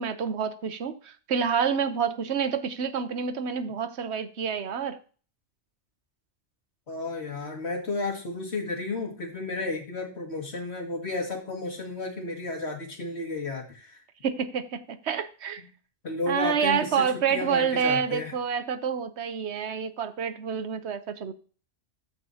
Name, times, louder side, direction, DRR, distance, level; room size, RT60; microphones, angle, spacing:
voice 1, 0.0-5.0 14.2-15.6 16.3-21.3, right 7 dB, 65° right, 1.0 m, -28 dB
voice 2, 6.9-14.0 16.0-18.4, left 3 dB, 60° left, 2.4 m, -32 dB
14.0 x 4.9 x 2.8 m
omnidirectional pair, 1.2 m